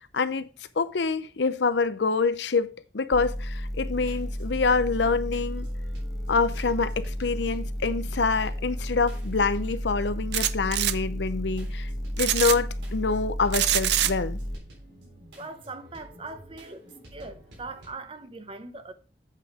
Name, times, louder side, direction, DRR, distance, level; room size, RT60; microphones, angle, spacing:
voice 1, 0.1-0.5 0.8-5.7 6.3-11.9 12.2-14.4, left 4 dB, 70° left, 0.6 m, -26 dB
sound 1, 3.1-14.6, equal, 20° left, 1.0 m, -33 dB
sound 2, 3.9-17.9, right 1 dB, 85° right, 3.7 m, -50 dB
sound 3, 10.3-10.9 12.2-12.6 13.5-14.1, right 12 dB, 70° right, 0.5 m, -24 dB
voice 2, 15.3-18.9, right 3 dB, 30° right, 0.8 m, -41 dB
8.3 x 5.6 x 4.9 m
head